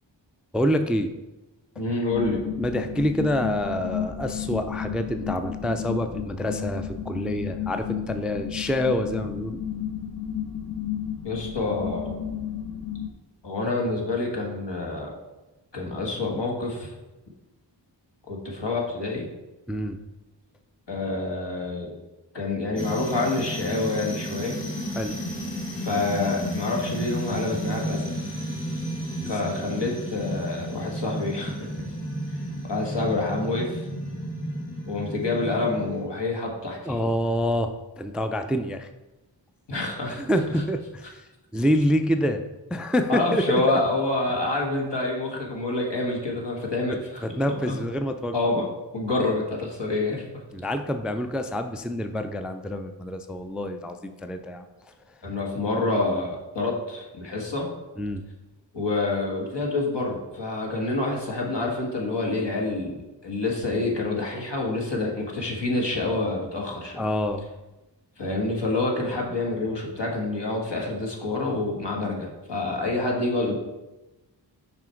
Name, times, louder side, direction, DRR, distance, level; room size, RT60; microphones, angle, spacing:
voice 1, 0.5-1.1 2.6-9.6 19.7-20.0 25.0-25.1 29.2-29.3 36.9-38.9 40.2-41.2 41.5-42.4 42.7-43.8 47.2-48.3 50.5-54.7 58.0-58.2 67.0-67.5, equal, ahead, 7 dB, 0.3 m, -27 dB
voice 2, 1.7-2.4 11.2-12.2 13.4-15.1 15.7-16.9 18.3-19.3 20.9-21.9 22.3-24.6 25.8-28.1 29.2-31.6 32.6-33.9 34.9-37.0 39.7-40.2 43.1-47.2 47.7-47.8 48.3-48.6 48.9-50.4 55.2-57.7 58.7-67.0 68.2-73.5, left 2 dB, 70° left, -1 dB, 1.6 m, -27 dB
sound 1, 2.1-13.1, left 9 dB, 50° left, 0.8 m, -33 dB
sound 2, 22.8-36.1, equal, 25° left, 2.0 m, -32 dB
6.0 x 5.0 x 4.5 m, 1.0 s
wide cardioid pair, 65°, 44 cm